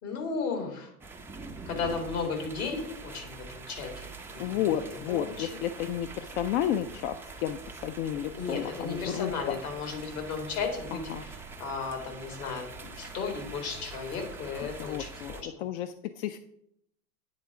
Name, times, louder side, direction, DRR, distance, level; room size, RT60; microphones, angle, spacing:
voice 1, 0.0-0.9 1.7-5.5 8.3-12.6 13.0-15.5, left 4 dB, 70° left, 3 dB, 2.3 m, -35 dB
sound 1, 1.0-15.4, right 3 dB, 5° right, 0.3 m, -44 dB
voice 2, 4.4-9.6 10.9-11.2 14.8-15.3 15.6-16.4, left 10 dB, 50° left, 10 dB, 0.5 m, -32 dB
9.1 x 3.6 x 4.7 m, 0.74 s
hypercardioid pair, 90°, 45 cm